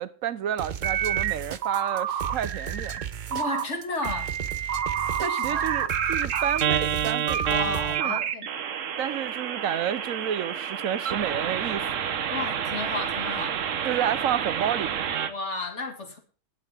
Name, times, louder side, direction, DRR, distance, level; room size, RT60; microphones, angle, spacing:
voice 1, 0.0-2.9 5.2-8.3 9.0-12.2 13.8-15.1, right 10 dB, 90° right, 1.2 m, -31 dB
sound 1, 0.6-8.0, right 8 dB, 45° right, 0.7 m, -35 dB
sound 2, 0.8-1.3 1.6-3.1 3.3-3.6 4.0-15.3, right 8 dB, 70° right, 1.2 m, -28 dB
voice 2, 3.3-4.3 5.2-5.7 7.5-8.5 12.3-13.6 15.3-16.2, left 3 dB, 60° left, 2.3 m, -33 dB
19.0 x 7.9 x 3.5 m
omnidirectional pair, 1.4 m